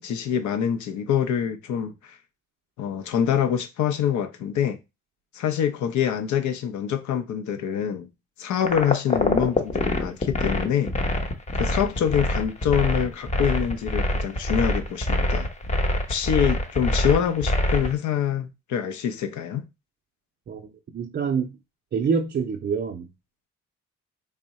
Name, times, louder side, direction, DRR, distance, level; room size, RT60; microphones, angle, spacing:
voice 1, 0.0-2.1 2.8-4.8 5.3-8.1 8.4-10.9 11.5-15.5 16.1-19.7, left 9 dB, 75° left, 0.7 m, -25 dB
sound 1, 8.6-17.9, left 1 dB, 25° left, 0.7 m, -25 dB
voice 2, 20.9-21.6 21.9-23.1, right 6 dB, 35° right, 0.5 m, -26 dB
3.6 x 2.1 x 4.0 m
cardioid pair, 90°, 30 cm